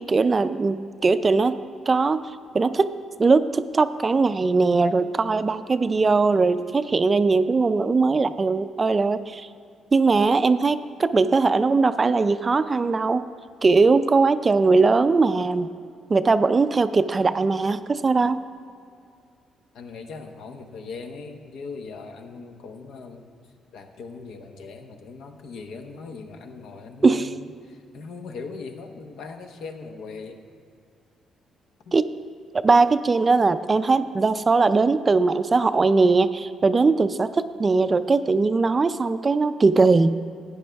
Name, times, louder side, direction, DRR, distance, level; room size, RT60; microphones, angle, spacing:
voice 1, 0.1-1.6 1.9-2.2 2.5-2.9 3.2-9.5 9.9-13.2 13.6-15.7 16.1-18.4 27.0-27.3 31.9-32.0 32.6-40.1, right 4 dB, 30° right, 12 dB, 0.4 m, -20 dB
voice 2, 19.7-23.2 23.7-30.4 31.8-32.0, left 4 dB, 75° left, 5 dB, 0.9 m, -39 dB
13.5 x 9.2 x 3.4 m, 2.3 s
cardioid pair, 90°, 0 cm